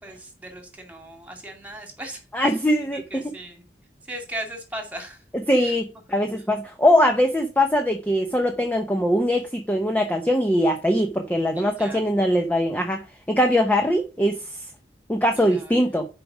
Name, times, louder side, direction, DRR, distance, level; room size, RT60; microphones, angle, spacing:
voice 1, 0.0-2.5 2.9-3.6 4.1-5.2 5.6-5.8 11.6-12.0 15.3-16.0, right 1 dB, 10° right, 2.2 m, -38 dB
voice 2, 2.3-3.2 5.3-14.6 15.1-16.1, equal, 10° left, 0.7 m, -22 dB
7.6 x 5.0 x 6.1 m
head